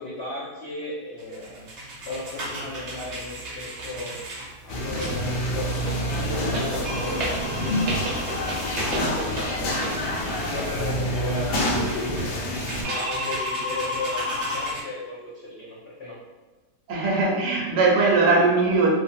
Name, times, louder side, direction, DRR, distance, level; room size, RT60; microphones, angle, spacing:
voice 1, 0.0-1.7 2.1-4.2 4.6-8.1 8.7-9.4 10.2-11.7 12.1-16.2, left 2 dB, 55° left, -10 dB, 0.7 m, -35 dB
sound 1, 1.2-14.8, equal, 60° right, 0.8 m, -33 dB
sound 2, 4.7-12.8, equal, 85° left, 1.2 m, -27 dB
voice 2, 16.9-18.9, right 3 dB, 80° right, -1 dB, 1.2 m, -20 dB
3.0 x 2.1 x 2.5 m, 1.2 s
omnidirectional pair, 1.8 m